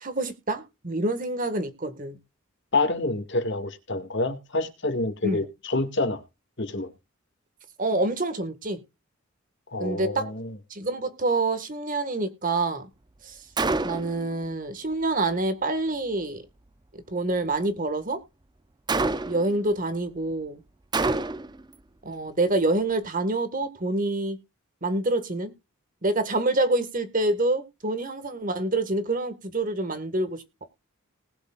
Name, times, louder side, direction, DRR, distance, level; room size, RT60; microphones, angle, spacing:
voice 1, 0.0-2.2 5.2-5.5 7.8-8.8 9.8-10.3 10.7-12.9 13.2-13.5 13.8-16.4 17.1-18.2 19.3-20.6 22.0-24.4 24.8-25.5 26.0-30.4, right 2 dB, 40° right, 1.7 m, -27 dB
voice 2, 2.7-6.2 6.6-6.9 9.7-10.5, left 2 dB, 55° left, 2.1 m, -27 dB
Gunshot gunfire, 13.6-14.2 18.9-19.6 20.9-21.6, right 3 dB, 20° right, 0.5 m, -26 dB
19.5 x 7.1 x 2.5 m
head